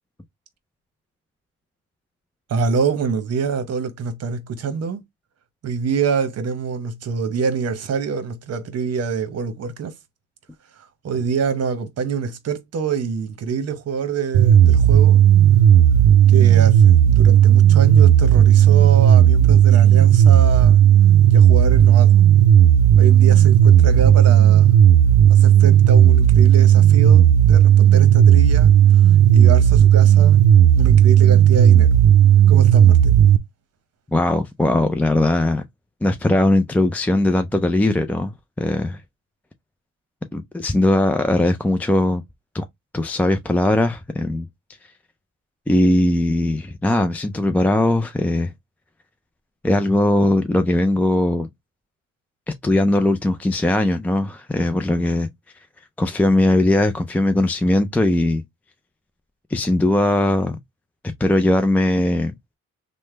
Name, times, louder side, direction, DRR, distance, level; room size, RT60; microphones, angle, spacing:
voice 1, 2.5-5.0 5.6-9.9 11.0-15.3 16.3-20.8 21.3-22.2 23.0-24.8 25.3-28.7 29.3-30.4 30.7-32.0 32.5-33.2, right 5 dB, 55° right, 0.9 m, -25 dB
sound 1, 14.3-33.4, right 10 dB, 80° right, 0.5 m, -12 dB
voice 2, 34.1-35.6 36.0-39.0 40.3-42.2 42.5-42.7 42.9-44.5 45.7-48.5 49.6-51.5 52.6-55.3 56.0-58.4 59.5-60.6 61.2-62.3, left 1 dB, 5° left, 0.3 m, -19 dB
3.2 x 2.1 x 3.1 m
cardioid pair, 90°, 30 cm